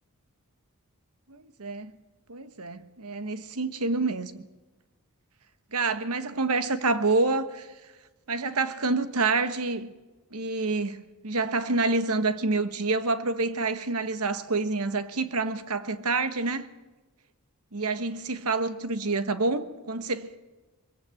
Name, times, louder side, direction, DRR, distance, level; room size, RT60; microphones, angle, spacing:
voice 1, 1.3-1.9 2.3-4.5 5.7-7.7 8.3-9.9 10.3-16.7 17.7-20.4, right 3 dB, 85° right, 1.3 m, -27 dB
21.5 x 17.0 x 7.8 m
head